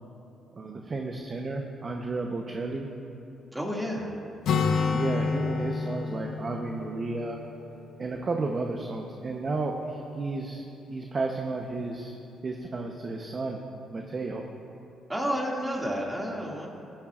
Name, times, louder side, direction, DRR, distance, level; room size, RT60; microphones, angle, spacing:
voice 1, 0.6-2.9 4.9-7.4 8.0-10.6 10.9-12.1 12.4-13.6 13.9-14.5, right 3 dB, 40° right, 2 dB, 0.9 m, -32 dB
voice 2, 3.5-4.1 15.1-16.7, equal, 10° right, -2 dB, 2.3 m, -30 dB
Acoustic guitar, 4.4-8.2, left 5 dB, 80° left, 1.0 m, -29 dB
16.5 x 13.0 x 2.5 m, 2.8 s
cardioid pair, 90°, 0 cm